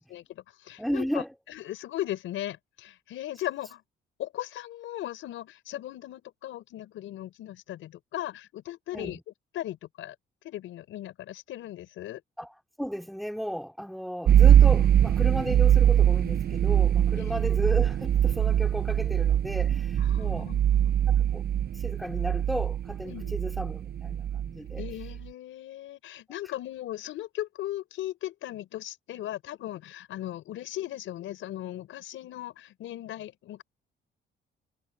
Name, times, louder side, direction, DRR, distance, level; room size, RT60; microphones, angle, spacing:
voice 1, 0.0-3.8 4.2-9.2 9.5-10.2 10.4-12.2 17.1-17.4 20.0-20.9 23.1-23.4 24.8-33.6, left 13 dB, 85° left, 5.2 m, -38 dB
voice 2, 0.8-1.3 8.9-9.2 12.4-12.5 12.8-20.5 21.1-21.4 21.7-24.8, equal, ahead, 4.5 m, -34 dB
sound 1, 14.3-25.2, right 10 dB, 50° right, 0.6 m, -22 dB
cardioid pair, 90°, 20 cm